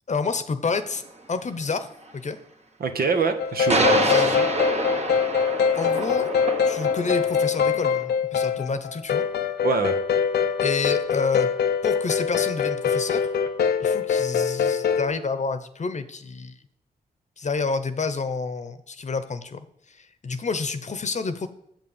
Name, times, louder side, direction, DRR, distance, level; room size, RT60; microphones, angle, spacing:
voice 1, 0.1-1.0 1.3-1.9 2.1-2.4 4.0-4.4 5.7-6.3 6.6-9.2 10.6-11.5 11.8-13.3 13.8-16.6 17.4-21.5, left 4 dB, 45° left, 11 dB, 0.9 m, -29 dB
sound 1, 1.0-1.1 3.7-8.0, right 2 dB, 40° right, 1.5 m, -27 dB
voice 2, 2.8-4.5 9.6-10.0, right 4 dB, 65° right, 6 dB, 1.3 m, -25 dB
sound 2, 3.4-15.1, left 7 dB, 85° left, 0.6 m, -24 dB
7.3 x 5.9 x 7.2 m, 0.74 s
cardioid pair, 70°, 16 cm